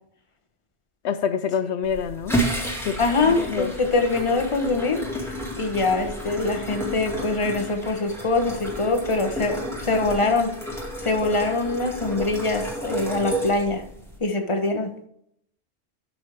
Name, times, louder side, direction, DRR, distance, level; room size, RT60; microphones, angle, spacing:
voice 1, 1.0-2.4 2.9-3.0 3.2-3.7, left 7 dB, 80° left, 0.9 m, -26 dB
sound 1, 1.8-14.2, equal, ahead, 2.2 m, -31 dB
voice 2, 3.0-5.0 5.6-10.5 11.0-13.8 14.2-14.9, left 3 dB, 30° left, 1.1 m, -23 dB
12.5 x 6.1 x 3.4 m
omnidirectional pair, 1.2 m